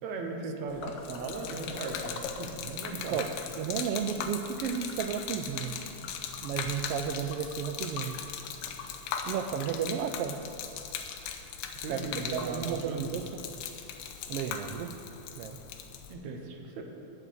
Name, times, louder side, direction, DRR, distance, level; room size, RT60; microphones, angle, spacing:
voice 1, 0.0-3.2 11.8-13.0 16.1-16.8, right 3 dB, 70° right, 3 dB, 2.2 m, -37 dB
Gurgling / Liquid, 0.7-16.1, left 7 dB, 85° left, 2.0 m, -39 dB
voice 2, 3.6-5.7 6.4-8.1 9.3-10.4 11.9-12.0 12.3-13.3 14.3-14.9 15.4-15.6, right 8 dB, 90° right, 8 dB, 1.3 m, -33 dB
8.2 x 7.1 x 8.4 m, 2.9 s
omnidirectional pair, 3.3 m